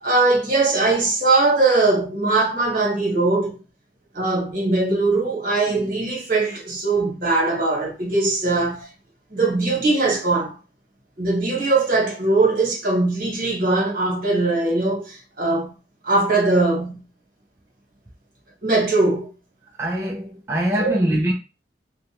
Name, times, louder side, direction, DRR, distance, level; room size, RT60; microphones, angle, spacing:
voice 1, 0.0-3.6 4.1-8.9 9.3-10.5 11.2-15.7 16.0-17.0 18.6-19.3 20.8-20.9, right 3 dB, 55° right, 1.2 m, -20 dB
voice 2, 19.8-21.3, right 1 dB, 15° right, 0.4 m, -23 dB
2.5 x 2.1 x 2.8 m
head